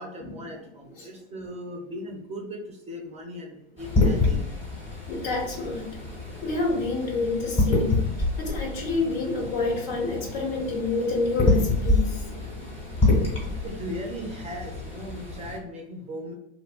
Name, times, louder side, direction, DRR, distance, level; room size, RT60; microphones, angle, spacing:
voice 1, 0.0-4.4 13.6-16.3, equal, 20° right, 0 dB, 0.4 m, -38 dB
sound 1, 3.8-15.6, left 2 dB, 20° left, 1.2 m, -27 dB
voice 2, 5.1-6.0 6.4-8.0 8.4-12.3, left 3 dB, 65° left, 0 dB, 1.1 m, -28 dB
2.7 x 2.2 x 2.4 m, 0.82 s
hypercardioid pair, 110°, 33 cm